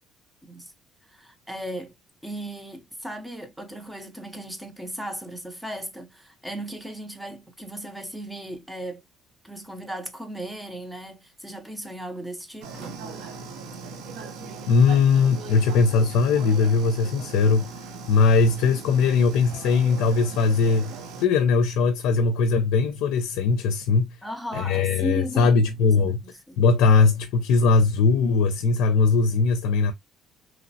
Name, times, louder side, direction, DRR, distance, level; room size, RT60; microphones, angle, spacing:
voice 1, 0.4-0.7 1.0-1.9 2.2-9.0 9.4-13.0 24.2-26.6, right 1 dB, 5° right, 0.5 m, -36 dB
sound 1, 12.6-21.3, right 4 dB, 80° right, 0.6 m, -39 dB
voice 2, 14.7-17.6 18.1-20.9 21.2-24.1 24.5-26.2 26.6-29.9, left 4 dB, 90° left, 0.4 m, -20 dB
3.0 x 2.0 x 2.6 m
cardioid pair, 155°, 0 cm